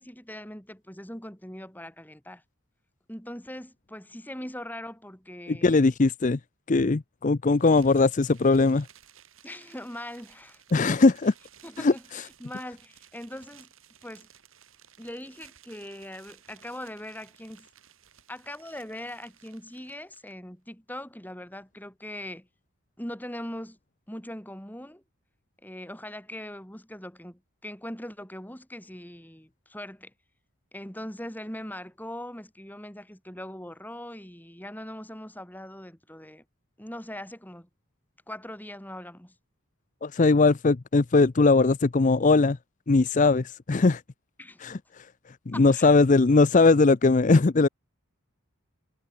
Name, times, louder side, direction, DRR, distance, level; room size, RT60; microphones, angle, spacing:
voice 1, 0.0-2.4 3.1-5.9 9.4-10.6 10.9-11.1 11.6-13.7 14.0-14.3 15.0-17.7 18.3-22.5 23.0-23.8 24.1-25.0 25.6-30.1 30.7-36.4 36.8-37.7 38.3-39.4 44.4-44.6 45.5-46.0, left 1 dB, 10° left, 5.2 m, -41 dB
voice 2, 5.5-6.4 6.7-8.9 10.7-11.3 11.8-12.2 40.0-42.6 42.9-44.0 44.6-45.1 45.5-47.7, left 3 dB, 35° left, 0.5 m, -20 dB
sound 1, 7.5-20.3, right 9 dB, 70° right, 7.6 m, -56 dB
head